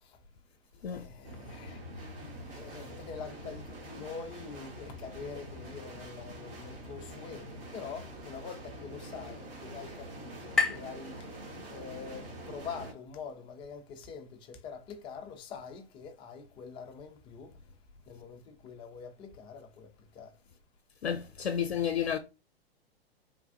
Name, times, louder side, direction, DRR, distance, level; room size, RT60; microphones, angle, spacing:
voice 1, 1.0-1.8 2.5-7.4 7.7-11.1 11.7-12.2 12.5-17.5 18.1-18.4 18.6-19.9 20.2-20.3, left 6 dB, 15° left, 0.4 m, -44 dB
sound 1, 1.2-12.9, right 1 dB, 65° right, 1.3 m, -45 dB
sound 2, 8.2-12.0, left 4 dB, ahead, 0.8 m, -37 dB
voice 2, 21.0-22.2, left 8 dB, 80° left, 0.5 m, -31 dB
3.4 x 2.2 x 2.4 m
figure-of-eight pair, 110°, 31 cm